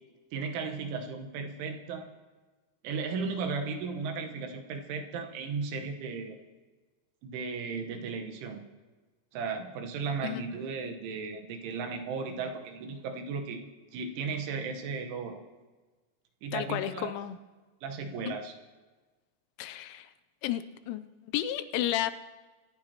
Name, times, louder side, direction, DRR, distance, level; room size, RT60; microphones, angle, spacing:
voice 1, 0.3-2.1 2.8-6.4 7.2-8.6 9.3-13.6 13.9-15.4 16.4-17.1 17.8-18.5, right 5 dB, 80° right, 4 dB, 3.6 m, -35 dB
voice 2, 16.5-17.4 18.3-18.4 19.6-20.1 20.4-22.1, left 12 dB, 85° left, 12 dB, 3.0 m, -32 dB
23.5 x 13.5 x 3.0 m, 1.3 s
omnidirectional pair, 5.5 m